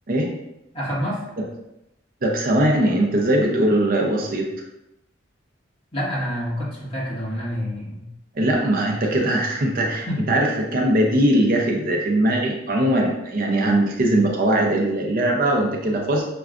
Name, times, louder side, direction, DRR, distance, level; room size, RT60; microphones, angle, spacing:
voice 1, 0.7-1.2 5.9-8.0 10.1-10.3, equal, 30° left, -6 dB, 1.4 m, -27 dB
voice 2, 2.2-4.5 8.3-16.2, right 1 dB, 50° right, 0 dB, 0.6 m, -20 dB
5.9 x 2.3 x 2.4 m, 0.87 s
head